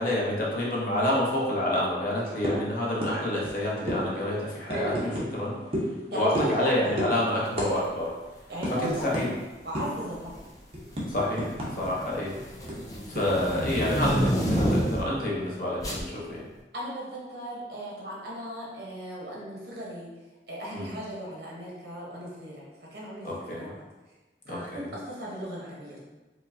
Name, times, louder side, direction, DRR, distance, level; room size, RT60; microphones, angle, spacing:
voice 1, 0.0-5.6 6.1-8.1 8.7-9.3 11.1-12.3 13.1-16.5 20.7-20.9 23.2-23.7 24.5-24.9, left 1 dB, 50° left, -4 dB, 0.8 m, -28 dB
sound 1, 2.4-2.7 3.0-3.2 3.4-3.6 3.9-4.0 4.7-5.3 5.7-5.9 6.3-6.6 7.0-7.1 7.6-7.7 8.0-8.2 8.6-8.7 9.1-9.3 9.7-10.0 10.4-11.9 12.2-12.3 12.7-13.6, equal, 35° right, 0.7 m, -31 dB
voice 2, 6.1-6.9 8.5-9.1 9.6-10.3 16.7-20.1 20.5-23.8 24.5-26.0, right 1 dB, 60° right, -5 dB, 1.0 m, -36 dB
sound 2, 8.9-9.2 10.1-10.6 10.9-15.2 15.8-16.1, equal, 20° left, 0.5 m, -29 dB
4.7 x 2.2 x 2.7 m, 1.2 s
head